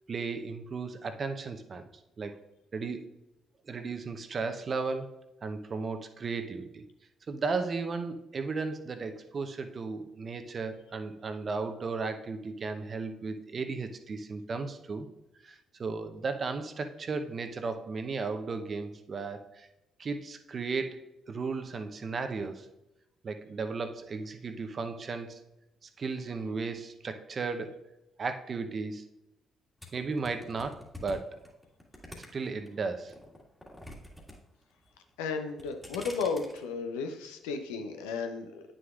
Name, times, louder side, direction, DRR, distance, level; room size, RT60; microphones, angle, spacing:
voice 1, 0.1-1.9 2.2-2.4 2.7-3.1 3.7-5.1 5.4-6.8 7.3-15.1 15.4-19.7 20.0-21.0 21.3-22.7 23.2-25.4 25.8-27.7 28.2-29.0 29.9-31.4 32.3-33.1, right 4 dB, 45° right, 8 dB, 0.7 m, -35 dB
sound 1, 29.8-32.7 33.1-34.4 34.6-35.1 35.5-36.6, left 1 dB, 5° left, 1.8 m, -46 dB
voice 2, 35.2-38.6, left 5 dB, 80° left, 6 dB, 0.6 m, -34 dB
9.3 x 6.3 x 2.4 m, 0.93 s
hypercardioid pair, 50°, 0 cm